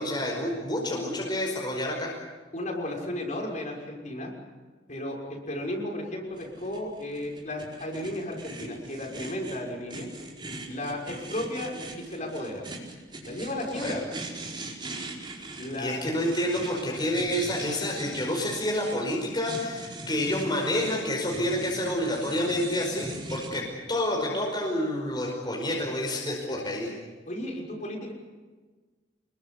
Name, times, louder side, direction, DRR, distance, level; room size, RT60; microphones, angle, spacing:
voice 1, 0.0-2.1 13.8-14.0 15.8-26.9, left 1 dB, 25° left, -1 dB, 5.2 m, -29 dB
voice 2, 2.5-4.3 4.9-10.1 10.7-12.6 13.2-14.0 14.8-15.0 15.6-16.0 27.3-28.1, left 1 dB, 40° left, 0 dB, 6.2 m, -34 dB
sound 1, 6.4-23.6, right 2 dB, 25° right, 4.7 m, -40 dB
28.5 x 22.0 x 8.4 m, 1.4 s
head